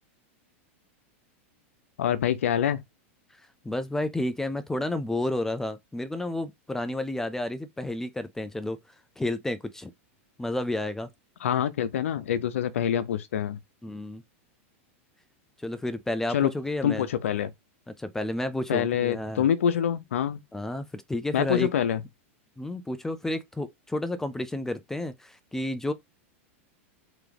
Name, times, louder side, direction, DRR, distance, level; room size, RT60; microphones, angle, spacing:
voice 1, 2.0-2.8 11.4-13.6 16.3-16.5 16.8-17.5 18.7-20.4 21.3-22.0, left 9 dB, 85° left, 0.7 m, -26 dB
voice 2, 3.6-8.8 9.2-9.9 10.4-11.1 13.8-14.2 15.6-17.1 18.0-19.5 20.5-21.7 22.6-25.9, left 1 dB, 5° left, 0.4 m, -31 dB
3.6 x 2.9 x 3.4 m
supercardioid pair, 135°, 7 cm